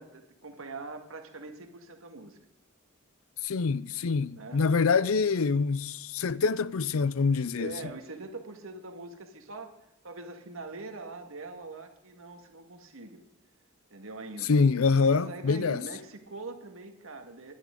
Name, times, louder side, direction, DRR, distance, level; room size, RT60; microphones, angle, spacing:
voice 1, 0.0-2.4 4.4-4.6 7.6-9.7 10.0-13.2 13.9-14.5 15.1-17.5, right 3 dB, 70° right, 1.9 m, -43 dB
voice 2, 3.4-7.8 14.4-15.8, left 4 dB, 75° left, 0.5 m, -25 dB
21.0 x 11.0 x 3.8 m
head